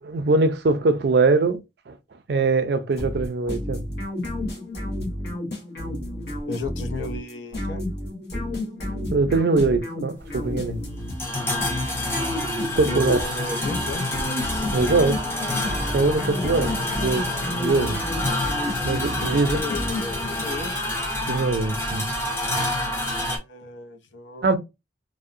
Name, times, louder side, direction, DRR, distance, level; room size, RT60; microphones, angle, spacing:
voice 1, 0.0-1.6 1.9-2.0 2.3-3.8 8.3-8.8 9.1-10.8 12.6-13.2 14.7-15.2 15.9-16.7 17.0-18.0 18.8-19.6 21.3-22.1 22.6-22.7 24.4-24.6, right 3 dB, 60° right, 0.4 m, -22 dB
sound 1, 3.0-20.5, left 1 dB, 65° left, 0.9 m, -31 dB
voice 2, 6.5-7.8 12.8-14.1 19.2-20.7 23.1-24.5, left 3 dB, 90° left, 0.5 m, -34 dB
sound 2, 10.2-23.4, left 1 dB, 15° left, 0.5 m, -28 dB
sound 3, 14.7-20.6, equal, 40° left, 1.3 m, -40 dB
2.7 x 2.0 x 2.5 m
head